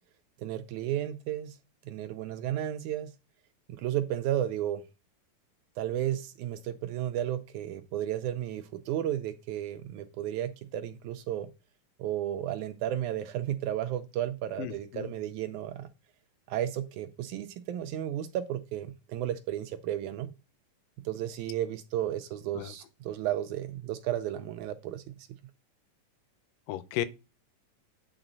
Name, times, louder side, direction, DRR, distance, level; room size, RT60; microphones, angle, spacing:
voice 1, 0.4-1.6 1.9-3.1 3.7-4.8 5.8-11.5 12.0-15.9 16.5-20.3 21.1-25.3, right 11 dB, 80° right, 1.8 m, -33 dB
voice 2, 14.6-15.1 22.6-22.7 26.7-27.1, left 13 dB, 90° left, 2.3 m, -34 dB
8.9 x 4.0 x 3.9 m
omnidirectional pair, 3.8 m